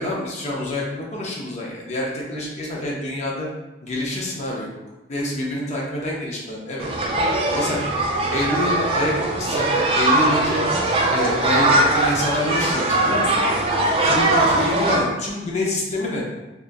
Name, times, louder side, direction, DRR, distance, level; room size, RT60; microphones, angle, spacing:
voice 1, 0.0-3.5 3.8-4.7 5.1-6.9 7.5-7.8 8.3-10.6 11.1-13.4 14.0-16.2, left 1 dB, 40° left, -2 dB, 0.6 m, -26 dB
sound 1, 6.8-15.0, right 2 dB, 30° right, 0.3 m, -20 dB
2.8 x 2.4 x 2.4 m, 1.1 s
head